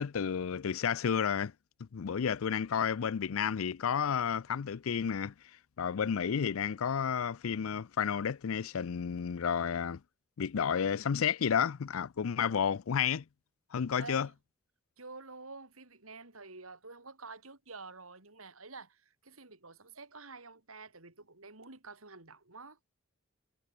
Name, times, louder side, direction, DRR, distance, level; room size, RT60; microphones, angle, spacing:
voice 1, 0.0-1.5 1.8-5.3 5.8-10.0 10.4-13.2 13.7-14.3, left 7 dB, 75° left, 0.5 m, -31 dB
voice 2, 14.0-14.3 15.0-22.8, right 3 dB, 90° right, 5.0 m, -49 dB
head